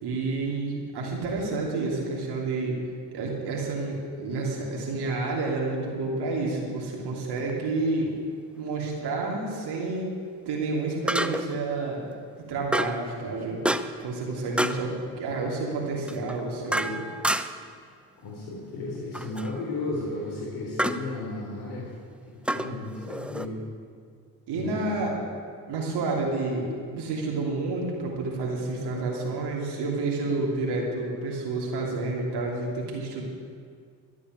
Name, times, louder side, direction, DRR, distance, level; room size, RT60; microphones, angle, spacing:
voice 1, 0.0-2.8 3.1-8.1 8.5-10.1 10.4-12.0 12.5-17.0 24.5-25.1 25.7-33.2, right 3 dB, 70° right, -2 dB, 3.1 m, -29 dB
sound 1, 7.4-7.5 11.1-11.6 12.7-13.1 13.6-14.1 14.6-14.9 16.1-17.7 19.1-19.5 20.8-21.1 22.4-23.5, right 1 dB, 5° right, 0.6 m, -28 dB
voice 2, 18.2-21.9 22.3-23.6 24.5-24.9, left 2 dB, 65° left, -4 dB, 3.4 m, -34 dB
13.0 x 8.4 x 9.1 m, 2.2 s
supercardioid pair, 70°, 41 cm